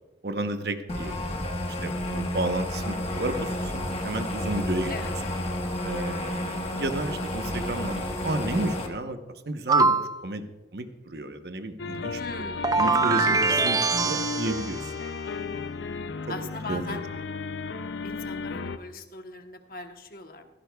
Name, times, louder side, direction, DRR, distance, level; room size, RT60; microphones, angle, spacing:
voice 1, 0.2-1.2 1.8-4.9 5.8-9.2 9.5-10.4 10.7-12.2 12.8-14.9 16.3-16.4 16.7-17.0, right 1 dB, 60° right, 7 dB, 0.9 m, -32 dB
sound 1, 0.9-8.9, left 1 dB, 35° left, 1.3 m, -31 dB
sound 2, 9.7-10.2 12.6-14.8, right 4 dB, 20° right, 0.4 m, -23 dB
sound 3, 11.8-18.8, left 4 dB, 75° left, 0.6 m, -34 dB
voice 2, 12.1-12.8 16.3-17.0 18.0-20.5, left 2 dB, 55° left, 5 dB, 1.1 m, -39 dB
16.0 x 15.5 x 2.3 m, 1.1 s
head